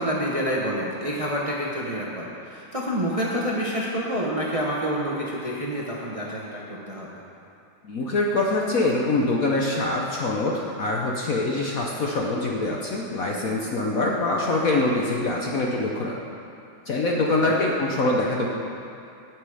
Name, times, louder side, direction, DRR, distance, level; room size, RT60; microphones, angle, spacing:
voice 1, 0.0-7.1 17.4-17.6, equal, 25° right, -4 dB, 0.8 m, -28 dB
voice 2, 7.8-16.2 16.9-18.5, left 2 dB, 55° left, -1 dB, 1.0 m, -24 dB
17.0 x 6.2 x 4.9 m, 2.6 s
omnidirectional pair, 2.2 m